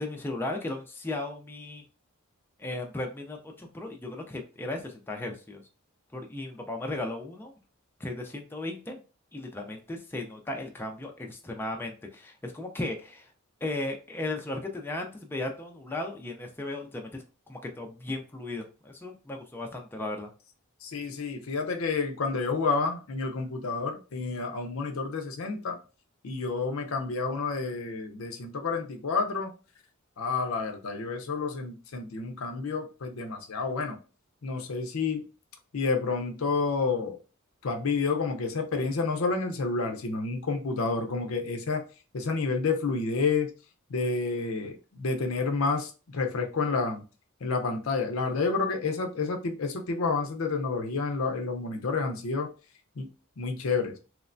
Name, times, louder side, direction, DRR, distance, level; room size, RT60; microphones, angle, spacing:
voice 1, 0.0-1.8 2.6-5.6 6.1-7.5 8.0-9.0 9.3-13.3 13.6-20.3, left 2 dB, 10° left, 0.4 m, -36 dB
voice 2, 20.8-25.8 26.2-29.5 30.2-34.0 34.4-35.2 35.7-37.2 37.6-41.8 42.1-43.5 43.9-47.0 47.4-52.5 53.0-53.1 53.4-53.9, left 4 dB, 75° left, 0.6 m, -29 dB
3.1 x 2.1 x 2.5 m
head